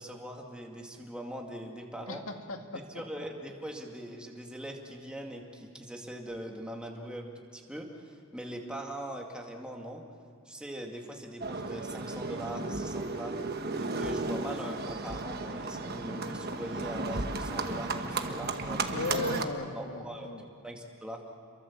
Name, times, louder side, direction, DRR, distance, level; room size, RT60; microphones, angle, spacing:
voice 1, 0.0-2.2 2.9-10.0 10.4-19.1 19.7-20.3 20.6-21.2, right 1 dB, 5° right, 0 dB, 2.2 m, -41 dB
voice 2, 2.1-2.8 18.9-20.4, left 3 dB, 75° left, 4 dB, 2.1 m, -36 dB
Livestock farm animals working animals, 11.4-19.4, right 3 dB, 45° right, 1.3 m, -34 dB
29.0 x 23.0 x 7.3 m, 2.1 s
head